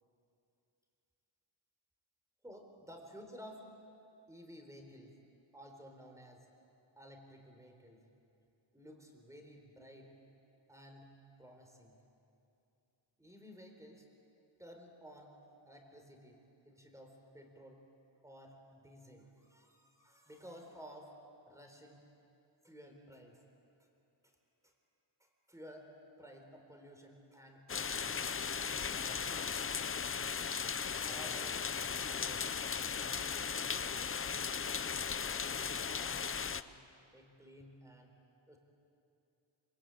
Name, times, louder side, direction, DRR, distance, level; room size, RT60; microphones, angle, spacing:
voice 1, 2.4-3.7 4.3-5.2 5.5-6.5 7.0-8.0 8.7-10.2 10.7-11.1 11.4-12.0 13.2-14.1 14.6-15.4 15.6-17.8 18.2-21.1 21.5-22.0 22.6-23.5 24.2-24.3 24.6-24.7 25.2-29.5 31.1-32.6 33.0-34.2 35.4-36.7 37.1-38.1 38.5-38.6, equal, 5° right, 3 dB, 3.8 m, -55 dB
sound 1, 27.7-36.6, left 6 dB, 25° left, 0.5 m, -37 dB
26.5 x 25.0 x 9.0 m, 2.7 s
wide cardioid pair, 170°, 49 cm